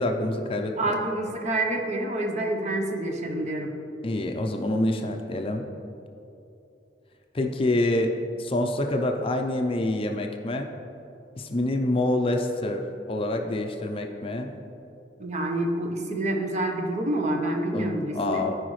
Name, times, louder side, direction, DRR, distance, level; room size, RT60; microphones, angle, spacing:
voice 1, 0.0-0.8 4.0-5.6 7.3-8.1 8.4-10.7 11.4-14.5 17.7-18.5, left 1 dB, 30° left, 4 dB, 0.5 m, -26 dB
voice 2, 0.8-3.7 15.2-18.5, right 1 dB, 40° right, 3 dB, 0.8 m, -27 dB
14.0 x 4.9 x 3.2 m, 2.7 s
head